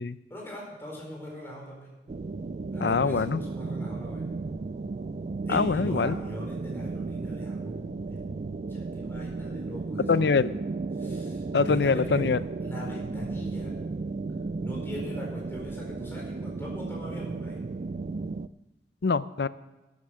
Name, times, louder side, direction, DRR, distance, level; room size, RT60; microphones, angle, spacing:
voice 1, 0.3-2.0 2.7-4.3 5.4-10.5 11.0-12.3 12.6-13.7 14.6-17.7, equal, 15° left, -2 dB, 4.4 m, -41 dB
sound 1, 2.1-18.5, right 3 dB, 40° right, 0.3 m, -34 dB
voice 2, 2.8-3.4 5.5-6.1 10.1-10.5 11.5-12.4 19.0-19.5, left 4 dB, 75° left, 16 dB, 0.5 m, -24 dB
11.5 x 9.9 x 6.4 m, 1.1 s
head